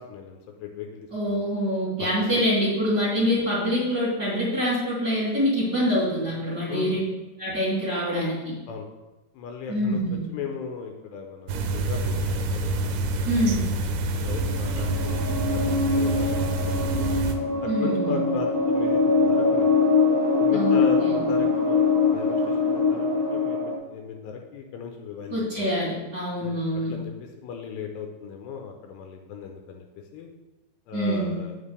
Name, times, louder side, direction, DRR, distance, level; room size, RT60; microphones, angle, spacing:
voice 1, 0.0-1.4 2.0-2.3 6.7-7.0 8.7-8.9 9.3-10.0 10.3-12.7 14.1-17.1 17.6-19.8 20.4-25.7 26.4-29.9 30.1-30.3 30.9-31.5, left 6 dB, 80° left, 3 dB, 2.7 m, -37 dB
voice 2, 1.1-7.0 7.4-8.5 9.7-10.2 13.3-13.7 17.7-18.2 20.5-21.2 25.3-26.9 30.9-31.4, equal, 25° right, -8 dB, 2.8 m, -25 dB
sound 1, 11.5-17.4, right 2 dB, 90° right, 3.0 m, -27 dB
sound 2, 14.3-23.8, left 4 dB, 10° left, 1.8 m, -23 dB
8.6 x 7.4 x 3.3 m, 1.1 s
omnidirectional pair, 5.2 m